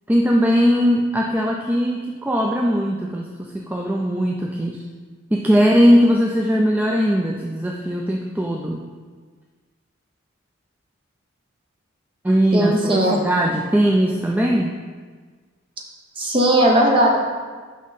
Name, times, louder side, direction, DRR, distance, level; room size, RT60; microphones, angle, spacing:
voice 1, 0.1-4.8 5.3-8.8 12.2-14.7, equal, 10° right, -1 dB, 0.3 m, -19 dB
voice 2, 12.5-13.2 16.2-17.2, right 1 dB, 25° right, 0 dB, 0.9 m, -17 dB
6.1 x 5.5 x 4.1 m, 1.5 s
head